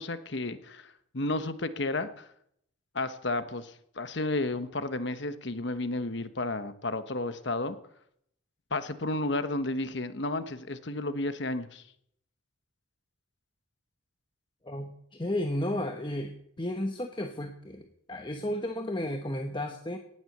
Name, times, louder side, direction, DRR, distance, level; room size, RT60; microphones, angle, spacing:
voice 1, 0.0-2.3 2.9-7.8 8.7-11.8, left 2 dB, 60° left, 11 dB, 1.1 m, -32 dB
voice 2, 14.6-16.3 16.6-20.0, left 1 dB, 25° left, 4 dB, 1.0 m, -33 dB
18.0 x 7.9 x 7.9 m, 0.72 s
head